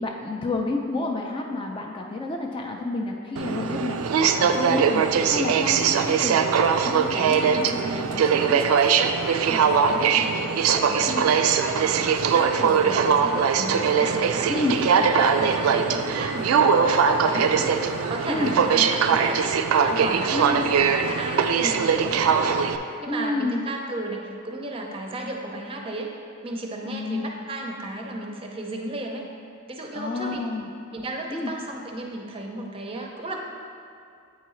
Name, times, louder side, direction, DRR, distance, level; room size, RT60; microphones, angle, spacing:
voice 1, 0.0-6.4 6.7-8.6 11.1-11.2 14.5-14.8 18.3-18.5 20.3-20.7 23.1-23.6 26.8-27.3 29.9-30.7 31.3-31.5, left 2 dB, 25° left, 1 dB, 0.3 m, -30 dB
Aircraft, 3.4-22.8, right 6 dB, 90° right, 0.3 m, -21 dB
voice 2, 7.5-8.0 9.4-26.1 26.4-29.3 29.7-30.4 30.9-33.4, right 1 dB, 25° right, 1 dB, 0.5 m, -33 dB
8.2 x 4.6 x 3.1 m, 2.4 s
head